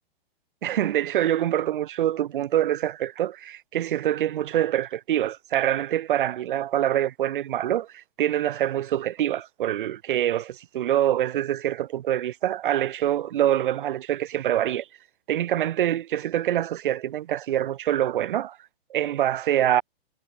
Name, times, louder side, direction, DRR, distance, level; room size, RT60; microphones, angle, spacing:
voice 1, 0.6-14.9 15.3-18.6 18.9-19.8, right 12 dB, 60° right, 0.5 m, -25 dB
hypercardioid pair, 175°, 30 cm